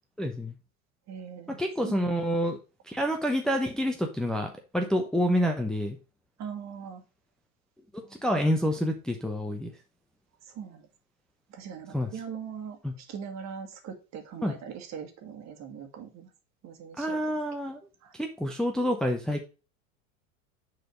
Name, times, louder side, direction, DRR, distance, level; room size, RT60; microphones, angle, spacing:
voice 1, 0.2-0.5 1.5-2.6 2.9-6.0 7.9-9.7 11.9-12.1 12.8-12.9 14.4-14.5 17.0-17.8 18.1-19.4, equal, ahead, 2 dB, 0.9 m, -28 dB
voice 2, 1.1-2.0 6.4-7.0 10.5-10.8 11.5-16.3 16.6-17.2 18.0-18.1, right 7 dB, 40° right, 5 dB, 1.9 m, -41 dB
6.5 x 4.2 x 5.4 m, 0.31 s
hypercardioid pair, 95°, 42 cm